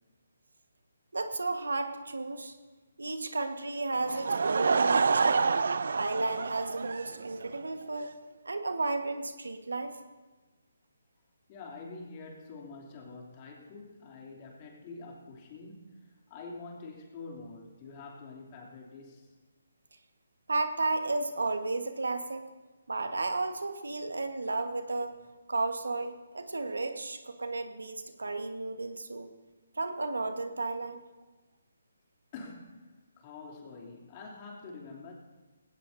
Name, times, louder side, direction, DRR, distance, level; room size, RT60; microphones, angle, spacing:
voice 1, 1.1-2.5 3.0-5.5 6.0-8.1 8.4-10.0 20.5-22.4 22.9-25.2 25.5-29.3 29.8-31.0, right 3 dB, 85° right, 7 dB, 1.5 m, -33 dB
Laughter / Crowd, 4.0-7.6, right 4 dB, 70° right, 0.6 m, -27 dB
voice 2, 11.5-19.4 32.3-35.1, left 3 dB, 30° left, -1 dB, 3.0 m, -46 dB
19.0 x 17.5 x 2.7 m, 1.3 s
hypercardioid pair, 155°, 0 cm